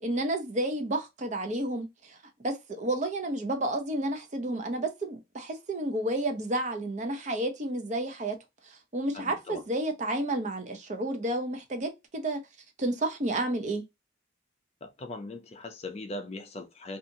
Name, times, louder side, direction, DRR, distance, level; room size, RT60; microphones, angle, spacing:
voice 1, 0.0-2.2 2.4-8.4 8.6-12.4 12.8-13.8, right 1 dB, 40° right, 0.6 m, -31 dB
voice 2, 9.1-9.6 14.8-17.0, left 2 dB, 35° left, 0.4 m, -40 dB
2.8 x 2.4 x 2.6 m
head